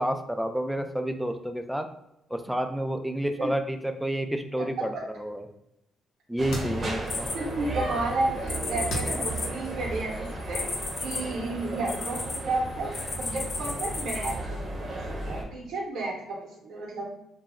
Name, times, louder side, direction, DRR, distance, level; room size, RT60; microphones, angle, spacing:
voice 1, 0.0-1.9 2.3-5.5 6.3-7.3, right 1 dB, ahead, 6 dB, 0.3 m, -30 dB
sound 1, 5.3-9.3, left 1 dB, 80° left, 0.7 m, -42 dB
sound 2, 6.4-15.4, right 2 dB, 40° right, 0.7 m, -35 dB
sound 3, 7.1-7.9 8.5-12.4 12.9-14.3, left 3 dB, 45° left, 0.6 m, -33 dB
voice 2, 7.3-10.7 11.0-12.9 13.2-17.1, right 2 dB, 75° right, -2 dB, 0.7 m, -32 dB
2.2 x 2.0 x 3.5 m, 0.84 s
cardioid pair, 90°, 0 cm